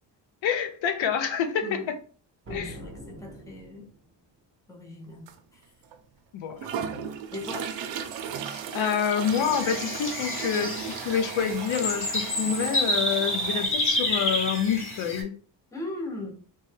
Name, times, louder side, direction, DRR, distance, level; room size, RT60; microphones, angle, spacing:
voice 1, 0.4-1.8 2.5-2.8 6.3-6.6 8.4-15.3, left 7 dB, 85° left, 0.7 m, -27 dB
sound 1, 2.4-4.2, right 1 dB, 30° right, 0.7 m, -43 dB
voice 2, 2.5-3.9 4.7-5.6 6.8-7.8 15.7-16.3, left 2 dB, 5° left, 0.6 m, -39 dB
sound 2, 5.3-5.4 5.9-6.0 6.6-13.7, right 8 dB, 80° right, 0.6 m, -36 dB
sound 3, 9.2-15.2, left 1 dB, 30° left, 1.0 m, -29 dB
3.1 x 2.2 x 3.2 m
cardioid pair, 125°, 44 cm